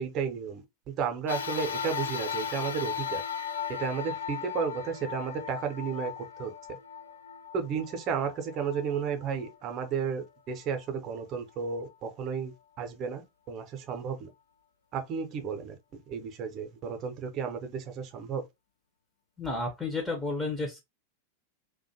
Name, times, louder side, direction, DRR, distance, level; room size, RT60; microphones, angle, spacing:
voice 1, 0.0-3.2 3.7-6.1 6.4-6.8 7.5-12.5 12.8-14.3 14.9-15.8 16.1-18.4, right 6 dB, 35° right, 0.7 m, -33 dB
sound 1, 1.3-9.9 10.5-10.6 11.7-11.8, left 7 dB, 70° left, 0.3 m, -37 dB
voice 2, 19.4-20.8, left 2 dB, 5° left, 0.7 m, -31 dB
2.4 x 2.2 x 2.7 m
figure-of-eight pair, 90°, 0 cm